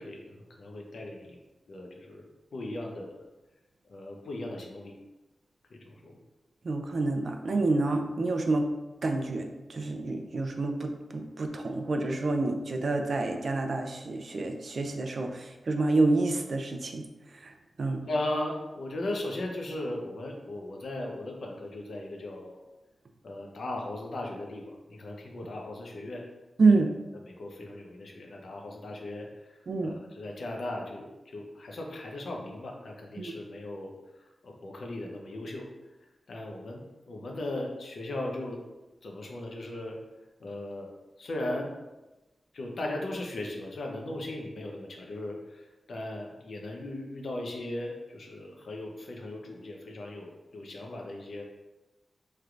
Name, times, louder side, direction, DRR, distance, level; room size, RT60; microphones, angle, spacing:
voice 1, 0.0-1.4 1.7-3.2 3.9-5.0 5.7-6.2 18.0-22.6 23.2-26.2 26.6-26.8 27.2-35.7 36.3-38.6 39.0-40.0 40.4-40.9 41.2-41.7 42.5-51.4, left 1 dB, 80° left, 1 dB, 0.7 m, -37 dB
voice 2, 6.6-8.7 9.0-17.0 17.4-17.5 17.8-18.1 26.6-26.9 29.7-29.9 33.2-33.3, right 3 dB, 65° right, 4 dB, 0.4 m, -28 dB
3.2 x 2.5 x 4.5 m, 1.1 s
wide cardioid pair, 125°, 0 cm